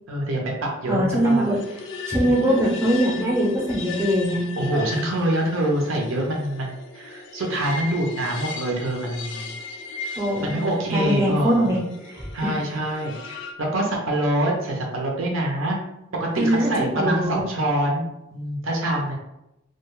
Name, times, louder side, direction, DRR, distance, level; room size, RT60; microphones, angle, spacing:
voice 1, 0.1-1.4 2.2-2.7 4.6-9.5 10.4-11.7 12.3-15.8 16.2-18.0 18.3-19.2, right 1 dB, 90° right, -1 dB, 0.6 m, -25 dB
voice 2, 0.9-1.6 2.1-4.4 10.2-11.8 12.1-12.5 16.4-16.7 17.0-17.4, equal, 15° right, -3 dB, 0.6 m, -22 dB
sound 1, 1.1-13.5, left 4 dB, 65° left, 0.4 m, -36 dB
2.4 x 2.2 x 3.1 m, 0.87 s
head